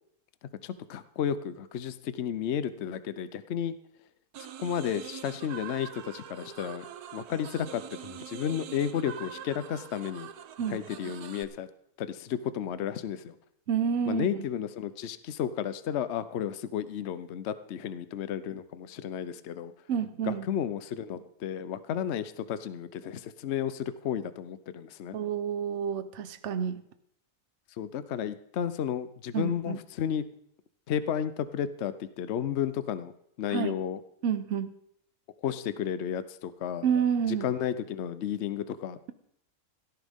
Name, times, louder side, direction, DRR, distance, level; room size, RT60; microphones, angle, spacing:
voice 1, 0.6-3.7 4.4-6.9 7.1-10.3 10.7-11.7 12.0-13.3 14.1-19.7 20.2-25.2 27.8-30.2 30.9-33.1 33.4-34.0 35.4-36.9 37.3-39.0, left 9 dB, 55° left, 13 dB, 0.8 m, -32 dB
sound 1, 4.3-11.4, right 9 dB, 80° right, 1.3 m, -44 dB
voice 2, 10.6-11.1 13.7-14.4 19.9-20.5 25.1-26.8 29.3-29.8 33.5-33.8 34.2-34.7 36.8-37.5, right 7 dB, 55° right, 11 dB, 1.0 m, -29 dB
17.0 x 13.5 x 3.6 m, 0.71 s
omnidirectional pair, 1.6 m